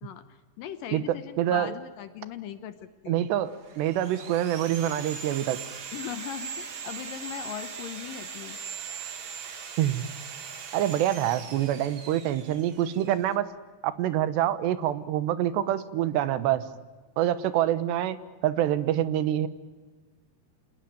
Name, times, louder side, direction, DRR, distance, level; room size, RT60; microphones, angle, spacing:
voice 1, 0.0-2.8 3.0-3.2 5.9-8.6, left 10 dB, 70° left, 11 dB, 2.3 m, -39 dB
voice 2, 0.9-1.8 3.1-3.5 3.8-5.6 9.8-10.0 10.7-13.5 13.8-16.6 17.2-18.2 18.4-19.5, right 12 dB, 90° right, 13 dB, 3.3 m, -26 dB
Sawing, 3.5-13.3, right 6 dB, 50° right, 1.5 m, -40 dB
27.5 x 19.5 x 9.2 m, 1.4 s
omnidirectional pair, 4.8 m